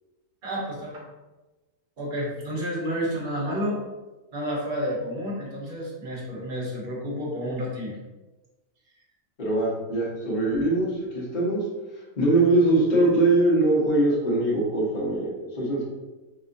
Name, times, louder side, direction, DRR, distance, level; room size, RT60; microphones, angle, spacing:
voice 1, 0.4-1.0 2.0-3.8 4.3-8.0, equal, 40° right, -4 dB, 1.1 m, -30 dB
voice 2, 9.4-11.6 12.2-15.8, right 2 dB, 35° left, -6 dB, 1.0 m, -22 dB
4.0 x 2.9 x 2.5 m, 1.1 s
omnidirectional pair, 1.5 m